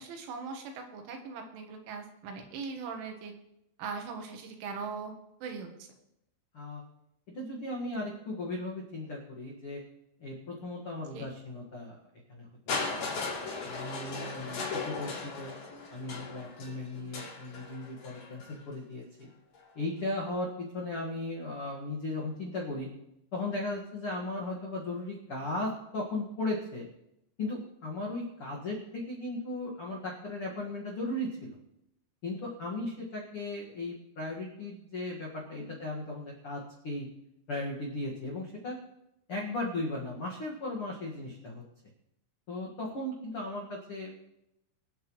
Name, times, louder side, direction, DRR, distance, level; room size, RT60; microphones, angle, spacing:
voice 1, 0.0-3.3 3.8-5.1 5.4-5.9 11.1-11.3 35.5-35.6, right 5 dB, 75° right, 4 dB, 3.8 m, -40 dB
voice 2, 7.3-9.8 10.2-11.9 12.3-13.1 13.6-15.5 15.9-19.3 19.7-22.9 23.3-26.9 27.4-31.6 32.2-37.1 37.5-38.7 39.3-41.6 42.5-44.1, left 2 dB, 85° left, -3 dB, 1.2 m, -36 dB
Crushing, 12.7-18.6 19.5-19.6, left 4 dB, 50° left, 4.8 m, -37 dB
25.0 x 8.3 x 3.2 m, 0.84 s
omnidirectional pair, 5.7 m